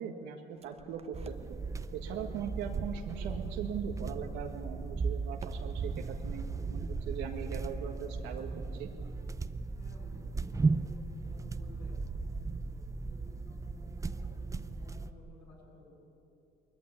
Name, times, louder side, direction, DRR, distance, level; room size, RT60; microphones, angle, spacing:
voice 1, 0.0-1.6 1.9-6.4 6.7-8.9, right 7 dB, 90° right, 2 dB, 1.8 m, -40 dB
sound 1, 0.6-1.5 1.8-12.7 13.1-13.5 13.9-14.4 15.1-15.5, right 5 dB, 35° right, 1.0 m, -42 dB
sound 2, 1.1-15.1, right 4 dB, 15° right, 0.6 m, -37 dB
voice 2, 9.8-12.5 13.0-16.1, left 1 dB, 70° left, -4 dB, 7.4 m, -57 dB
20.5 x 14.5 x 9.9 m, 2.7 s
cardioid pair, 115°, 18 cm